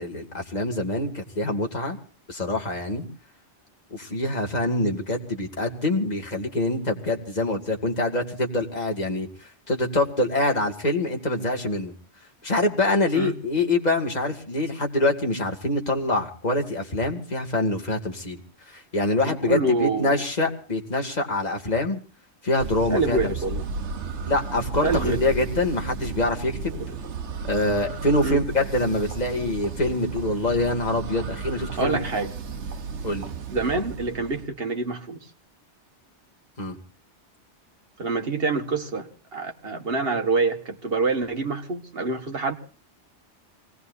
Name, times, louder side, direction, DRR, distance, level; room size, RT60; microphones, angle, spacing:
voice 1, 0.0-2.0 2.3-3.1 3.9-11.9 12.4-18.4 18.7-22.0 22.4-23.2 24.3-26.8 27.4-32.0 33.0-33.3 36.6-36.8, left 2 dB, 40° left, 2 dB, 2.5 m, -25 dB
voice 2, 19.2-20.2 22.9-23.7 24.8-25.2 26.7-26.9 28.2-28.4 31.8-32.3 33.5-35.3 38.0-42.5, right 3 dB, 60° right, 4 dB, 2.1 m, -26 dB
sound 1, 22.6-34.4, right 4 dB, 85° right, 1.4 m, -34 dB
26.5 x 19.5 x 2.7 m, 0.39 s
omnidirectional pair, 1.1 m